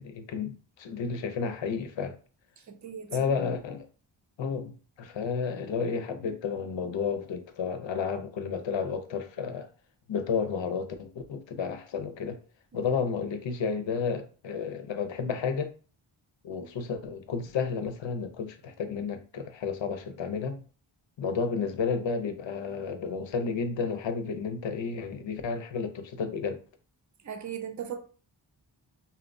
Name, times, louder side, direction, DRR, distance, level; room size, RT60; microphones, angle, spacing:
voice 1, 0.0-2.2 3.1-3.9 4.4-9.7 10.1-12.4 12.7-15.7 16.4-20.6 21.2-26.6, left 5 dB, 65° left, 0.6 m, -32 dB
voice 2, 2.7-3.1 12.7-12.8 27.2-28.0, right 8 dB, 40° right, 0.6 m, -37 dB
2.8 x 2.0 x 2.5 m
cardioid pair, 40°, 48 cm